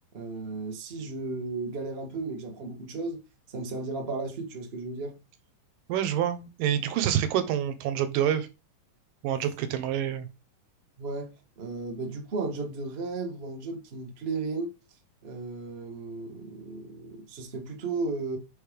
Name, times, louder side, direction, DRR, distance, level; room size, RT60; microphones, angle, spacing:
voice 1, 0.1-3.2 3.5-5.2 11.0-14.7 15.2-18.4, right 3 dB, 65° right, 0.6 m, -34 dB
voice 2, 5.9-8.5 9.2-10.3, right 10 dB, 80° right, 2.5 m, -27 dB
6.4 x 3.4 x 5.1 m
omnidirectional pair, 3.9 m